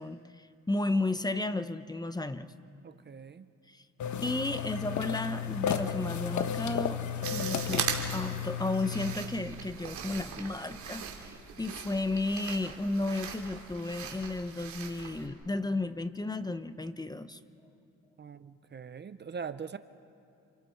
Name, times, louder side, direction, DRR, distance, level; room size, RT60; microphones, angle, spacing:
voice 1, 0.0-2.5 3.7-3.8 4.2-7.0 7.3-17.4, left 2 dB, 15° left, 11 dB, 0.8 m, -33 dB
voice 2, 2.8-3.5 18.2-19.8, right 6 dB, 35° right, 13 dB, 0.7 m, -42 dB
sound 1, 4.0-9.1, left 8 dB, 70° left, 1.3 m, -33 dB
sound 2, 7.2-15.3, right 7 dB, 70° right, 2.9 m, -40 dB
29.5 x 27.5 x 4.6 m, 2.6 s
cardioid pair, 90°, 30 cm